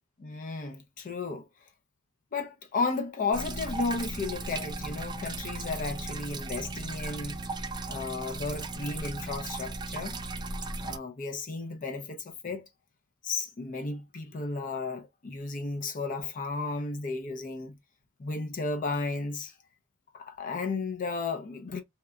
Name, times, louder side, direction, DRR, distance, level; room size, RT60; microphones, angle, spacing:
voice 1, 0.2-1.5 2.3-7.4 7.9-10.2 10.8-12.7 13.2-17.8 18.2-19.5 20.1-21.8, left 3 dB, 40° left, 0.5 m, -34 dB
sound 1, 3.3-11.0, right 2 dB, 20° right, 0.3 m, -36 dB
2.9 x 2.1 x 2.3 m
head